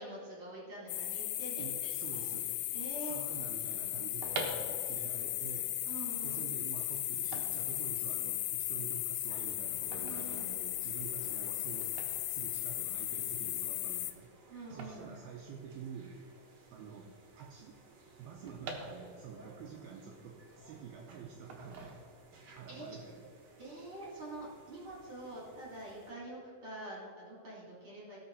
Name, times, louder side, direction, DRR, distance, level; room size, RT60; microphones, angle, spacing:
voice 1, 0.0-2.3 2.7-3.2 5.8-6.5 9.9-10.5 14.5-15.2 18.4-18.6 22.4-23.0 23.6-28.2, right 2 dB, 30° right, -6 dB, 3.4 m, -46 dB
sound 1, 0.9-14.1, left 14 dB, 85° left, 3.0 m, -36 dB
voice 2, 1.6-2.5 3.0-5.8 6.2-11.9 12.3-14.3 14.7-16.2 16.7-17.8 18.2-22.0 22.6-23.2, right 6 dB, 85° right, 1 dB, 2.1 m, -48 dB
sound 2, 4.2-16.1 16.4-16.5 16.6-19.5 19.9-20.9 21.5-22.5 22.8-23.1, right 3 dB, 65° right, 1.9 m, -47 dB
sound 3, 9.3-26.1, right 2 dB, 50° right, 2.0 m, -59 dB
18.5 x 6.5 x 4.1 m, 2.5 s
omnidirectional pair, 5.4 m